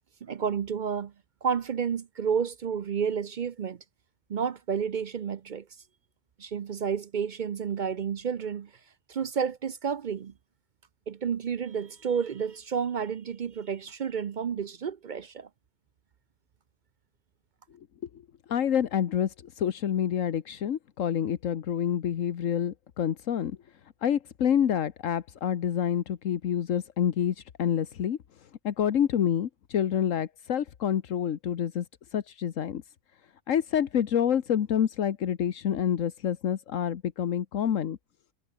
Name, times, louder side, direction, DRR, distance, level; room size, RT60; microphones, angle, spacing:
voice 1, 0.2-1.1 1.4-3.8 4.3-5.6 6.4-8.7 9.1-10.3 11.1-15.5, right 7 dB, 50° right, 0.6 m, -30 dB
voice 2, 18.5-23.6 24.0-28.2 28.6-31.8 32.1-32.8 33.5-38.0, left 9 dB, 85° left, 1.4 m, -27 dB
omnidirectional pair, 1.3 m